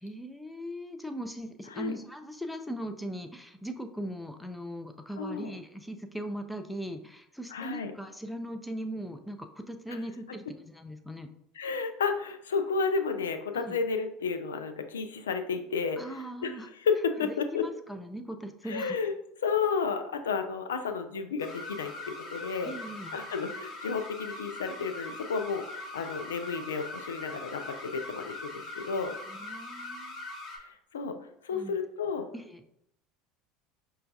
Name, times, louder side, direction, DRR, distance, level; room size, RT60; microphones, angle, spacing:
voice 1, 0.0-11.3 13.5-13.8 16.0-16.7 17.2-19.0 22.6-23.2 29.3-30.2 31.5-31.8 32.3-32.6, equal, 5° left, 7 dB, 0.4 m, -39 dB
voice 2, 5.2-5.5 7.5-7.9 9.9-10.0 11.6-16.0 16.4-17.7 18.7-19.1 19.4-22.7 23.1-29.1 30.6-31.2 31.4-32.3, left 5 dB, 90° left, 8 dB, 0.3 m, -32 dB
sound 1, 21.4-30.6, left 2 dB, 45° left, 1.1 m, -41 dB
5.4 x 2.3 x 2.6 m, 0.79 s
hypercardioid pair, 80°, 0 cm